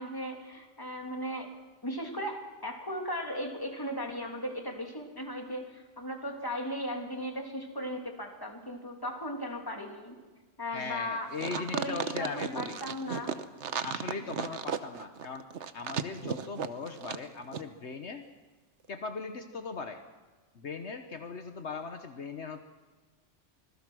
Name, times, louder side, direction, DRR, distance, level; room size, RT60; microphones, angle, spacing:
voice 1, 0.0-1.5 1.8-10.2 10.6-13.3 14.2-14.5, equal, 20° left, 2 dB, 2.9 m, -37 dB
voice 2, 10.7-12.8 13.8-15.5 15.7-18.2 18.9-20.0 20.5-22.6, left 4 dB, 70° left, 7 dB, 1.5 m, -39 dB
sound 1, 11.4-17.3 17.5-17.6, right 7 dB, 70° right, 1.3 m, -34 dB
26.0 x 19.5 x 6.2 m, 1.3 s
omnidirectional pair, 1.2 m